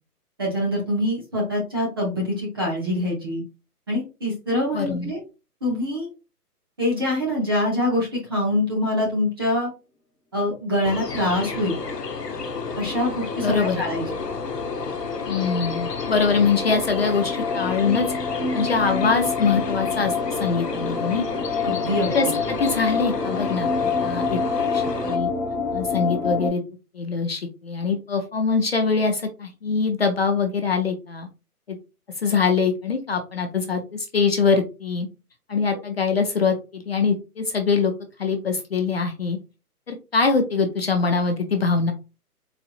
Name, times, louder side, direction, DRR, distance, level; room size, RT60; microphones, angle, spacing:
voice 1, 0.4-3.4 3.9-5.2 5.6-6.1 6.8-9.7 10.3-11.8 12.8-14.1 21.6-22.3, left 1 dB, 15° right, -3 dB, 0.6 m, -24 dB
voice 2, 4.7-5.1 13.4-13.8 15.3-18.1 18.5-21.3 22.1-23.7 24.0-24.4 24.7-25.3 25.7-26.6 26.9-31.3 31.7-31.8 32.2-35.1 35.5-37.9 38.2-39.4 39.9-41.9, left 5 dB, 40° left, 5 dB, 0.5 m, -23 dB
sound 1, 10.8-25.2, left 4 dB, 90° left, 0.9 m, -30 dB
sound 2, 13.3-26.5, left 4 dB, 5° left, 0.9 m, -28 dB
4.1 x 2.8 x 2.3 m, 0.30 s
hypercardioid pair, 150°, 47 cm